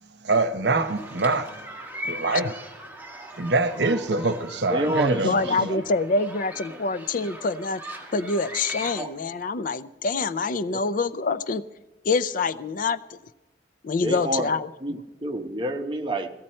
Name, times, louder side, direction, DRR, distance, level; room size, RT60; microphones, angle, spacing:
voice 1, 0.2-1.5 2.0-2.5 3.4-5.8, right 3 dB, 70° right, 10 dB, 0.9 m, -24 dB
sound 1, 0.7-9.0, equal, 10° right, 1.4 m, -40 dB
voice 2, 4.7-5.6 6.7-6.8 9.0-9.1 10.7-10.8 14.0-14.5 14.8-16.3, right 1 dB, 25° right, 5 dB, 1.0 m, -28 dB
voice 3, 5.2-7.8 8.1-11.6 12.0-13.2 13.8-14.7, left 3 dB, 50° left, 15 dB, 0.5 m, -26 dB
16.5 x 15.0 x 4.3 m, 1.0 s
head